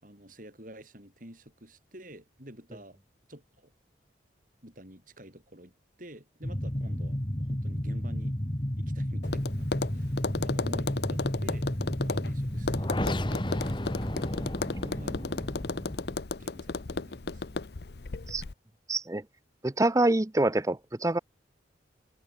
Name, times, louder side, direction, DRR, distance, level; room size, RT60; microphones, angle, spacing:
voice 1, 0.0-3.0 3.3-3.7 4.6-5.7 6.0-8.4 8.8-11.7 12.0-13.5 14.8-15.5 16.4-17.6, right 1 dB, 45° right, 6.5 m, -49 dB
sound 1, 6.4-16.1, left 1 dB, 25° left, 1.8 m, -32 dB
Tap, 9.2-18.5, left 3 dB, 60° left, 0.7 m, -35 dB
voice 2, 18.9-19.2 19.6-21.2, right 2 dB, 15° right, 0.6 m, -26 dB
head